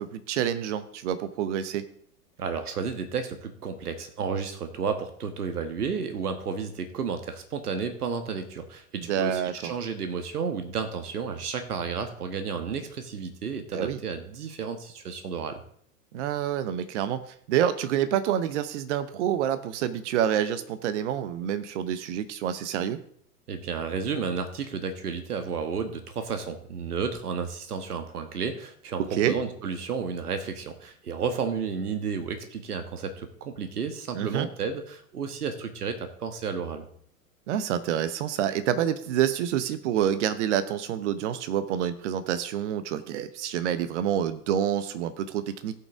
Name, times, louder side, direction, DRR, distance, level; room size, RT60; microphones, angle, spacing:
voice 1, 0.0-1.8 8.9-9.7 13.7-14.0 16.1-17.2 17.5-23.0 29.1-29.3 34.1-34.5 37.5-45.7, right 10 dB, 50° right, 13 dB, 1.0 m, -27 dB
voice 2, 2.4-15.6 23.5-36.9, right 5 dB, 70° right, 7 dB, 1.4 m, -32 dB
16.0 x 5.7 x 3.6 m, 0.62 s
figure-of-eight pair, 95°, 47 cm